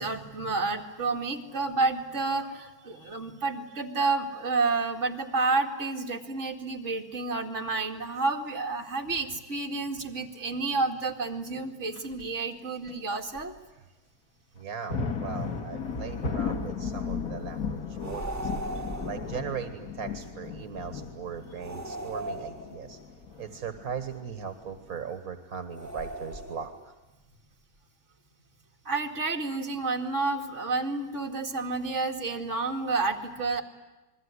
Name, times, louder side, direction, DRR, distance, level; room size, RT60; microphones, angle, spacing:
voice 1, 0.0-13.5 28.8-33.6, right 3 dB, 55° right, 2 dB, 2.5 m, -30 dB
sound 1, 12.0-12.3 12.9-13.0 13.4-13.5 14.6-24.9, left 5 dB, 85° left, 2.2 m, -36 dB
voice 2, 14.6-18.5 18.8-23.0 23.4-26.9, right 6 dB, 80° right, 9 dB, 1.8 m, -39 dB
sound 2, 18.0-19.3 21.6-23.0 25.7-26.8, right 1 dB, 10° right, 1.2 m, -37 dB
28.5 x 21.0 x 9.7 m, 1.1 s
omnidirectional pair, 1.5 m